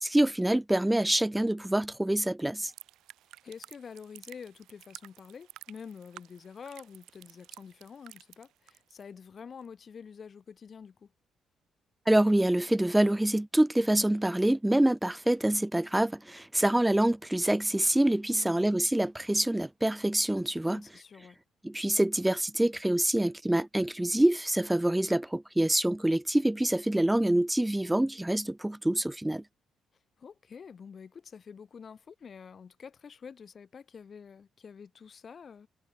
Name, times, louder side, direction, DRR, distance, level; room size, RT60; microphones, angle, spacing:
voice 1, 0.0-2.7 12.1-20.8 21.6-29.4, right 1 dB, 10° right, 0.4 m, -26 dB
sound 1, 2.7-9.0 9.4-9.7, right 14 dB, 85° right, 3.7 m, -52 dB
voice 2, 3.4-11.1 18.3-18.7 20.7-21.4 30.2-35.7, left 6 dB, 45° left, 4.0 m, -47 dB
cardioid pair, 90°, 0 cm